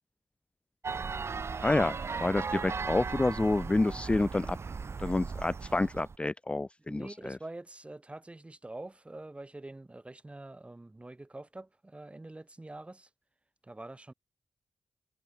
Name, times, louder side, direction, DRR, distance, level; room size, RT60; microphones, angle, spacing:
sound 1, 0.8-6.2, right 5 dB, 50° right, 0.8 m, -37 dB
voice 1, 1.6-4.6 5.0-7.4, left 2 dB, 20° left, 0.4 m, -29 dB
voice 2, 6.9-13.1 13.6-14.1, right 2 dB, 20° right, 1.0 m, -45 dB
supercardioid pair, 45°, 6 cm